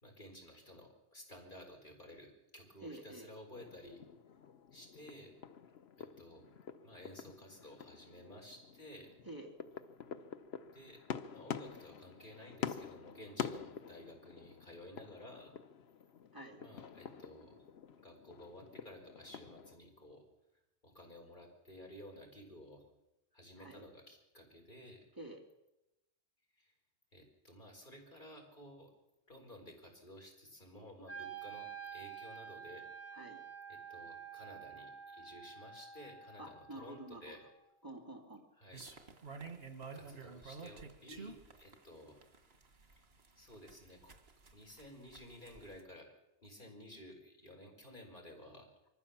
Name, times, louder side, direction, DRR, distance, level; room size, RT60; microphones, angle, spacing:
voice 1, 0.0-4.0 4.7-5.3 6.0-6.4 6.8-9.1 10.7-11.0 11.3-15.6 16.6-17.7 18.0-20.2 20.8-22.8 23.3-25.0 26.5-26.7 27.1-28.9 29.3-32.9 33.7-37.4 38.6-38.8 39.9-42.2 43.4-44.1 44.5-46.1 46.4-48.7, left 1 dB, 55° left, 1 dB, 4.7 m, -54 dB
voice 2, 2.8-3.3 9.2-9.5 16.3-16.6 23.6-23.8 25.2-25.4 33.1-33.4 36.4-37.4 37.8-38.5, right 1 dB, 20° right, 1 dB, 2.5 m, -49 dB
sound 1, 3.5-19.8, left 7 dB, 85° left, 1.1 m, -47 dB
Wind instrument woodwind instrument, 31.1-37.1, right 7 dB, 40° left, 2.2 m, -49 dB
sound 2, 38.7-45.8, right 4 dB, 85° right, 2.1 m, -50 dB
24.0 x 15.0 x 7.3 m, 0.94 s
omnidirectional pair, 1.0 m